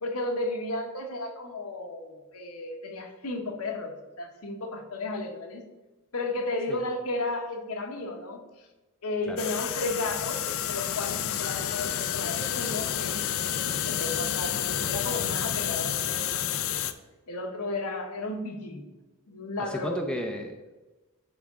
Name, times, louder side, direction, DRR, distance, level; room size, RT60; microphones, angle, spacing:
voice 1, 0.0-5.6 6.1-8.7 9.0-16.9 17.3-18.9 19.3-20.0, left 2 dB, 80° left, 4 dB, 1.0 m, -34 dB
sound 1, 9.4-16.9, left 10 dB, 60° left, 0.4 m, -30 dB
voice 2, 19.6-20.7, equal, 5° left, 3 dB, 0.5 m, -34 dB
10.0 x 3.5 x 3.7 m, 1.1 s
head